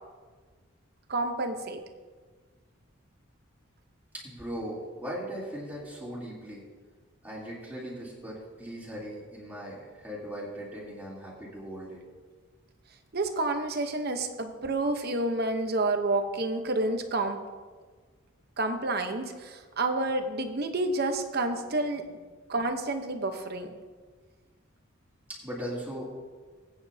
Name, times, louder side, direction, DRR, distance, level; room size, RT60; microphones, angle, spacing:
voice 1, 1.1-1.8 13.1-17.4 18.6-22.1 22.5-23.7, right 2 dB, 50° right, 6 dB, 1.0 m, -29 dB
voice 2, 4.2-6.6 7.2-12.0 21.7-22.1 25.3-26.0, equal, 10° right, -6 dB, 3.3 m, -39 dB
20.0 x 9.4 x 2.9 m, 1.5 s
head